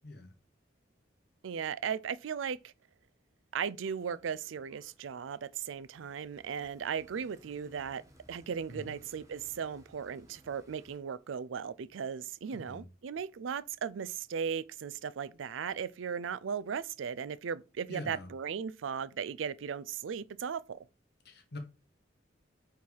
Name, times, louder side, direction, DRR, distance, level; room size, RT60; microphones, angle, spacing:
voice 1, 0.0-0.3 8.7-8.9 12.5-12.9 17.9-18.3 21.2-21.6, left 1 dB, 60° left, 1.5 m, -45 dB
voice 2, 1.4-2.7 3.5-8.0 8.3-20.8, right 7 dB, 90° right, 0.4 m, -37 dB
sound 1, 3.8-11.0, equal, 15° right, 1.1 m, -61 dB
4.7 x 4.5 x 5.4 m
head